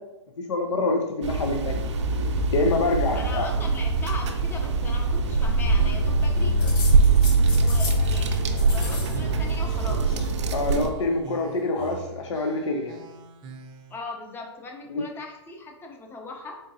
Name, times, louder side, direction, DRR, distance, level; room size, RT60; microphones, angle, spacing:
voice 1, 0.5-1.9 2.5-3.5 10.5-13.0 14.9-15.0, left 2 dB, 75° left, 3 dB, 0.5 m, -26 dB
sound 1, 1.2-10.9, right 3 dB, 70° right, 0.5 m, -23 dB
voice 2, 3.1-6.5 7.6-10.1 13.9-16.6, left 3 dB, 15° left, 2 dB, 0.6 m, -39 dB
sound 2, 5.2-14.0, right 4 dB, 30° right, 0.6 m, -43 dB
sound 3, 6.6-8.1 8.3-9.2 9.4-10.3 11.3-12.0, left 4 dB, 45° left, 1.1 m, -38 dB
3.8 x 3.7 x 2.6 m, 0.95 s
hypercardioid pair, 130°, 15 cm